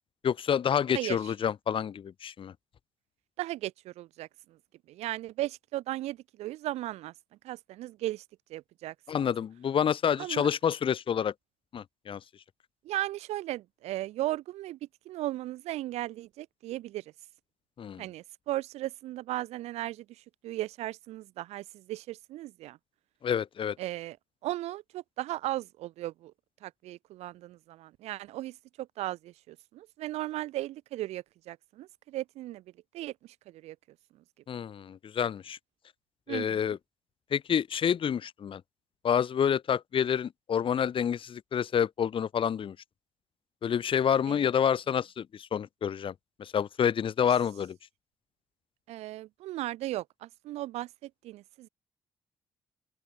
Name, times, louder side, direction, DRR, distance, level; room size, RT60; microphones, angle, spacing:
voice 1, 0.2-2.5 9.1-11.3 11.7-12.2 17.8-18.0 23.2-23.8 34.5-35.6 36.3-36.8 37.3-38.6 39.0-42.8 43.6-46.1 46.4-47.8, left 8 dB, 50° left, 1.0 m, -28 dB
voice 2, 0.9-1.3 3.4-4.6 4.9-7.1 7.4-8.2 8.5-8.9 9.2-9.3 10.2-10.5 12.8-14.8 15.0-17.0 18.0-22.8 23.8-24.2 24.4-26.3 26.6-32.6 32.9-33.8 36.3-36.6 44.3-44.4 48.9-51.7, right 15 dB, 70° right, 2.9 m, -36 dB
open air
hypercardioid pair, 40°, 11 cm